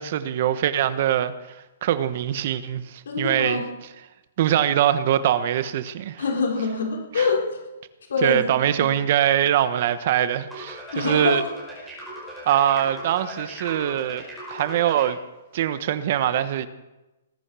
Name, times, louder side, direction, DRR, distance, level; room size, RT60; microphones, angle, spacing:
voice 1, 0.0-1.6 1.8-3.6 4.4-6.2 7.2-7.3 8.2-11.4 12.5-15.2 15.5-16.7, right 11 dB, 40° right, 13 dB, 1.1 m, -23 dB
voice 2, 3.1-3.6 6.2-7.6 8.1-8.6 10.9-11.4, left 4 dB, 80° left, 0 dB, 4.1 m, -25 dB
sound 1, 10.5-15.1, right 1 dB, 5° right, 5.3 m, -38 dB
20.0 x 10.0 x 6.2 m, 1.0 s
hypercardioid pair, 165°, 0 cm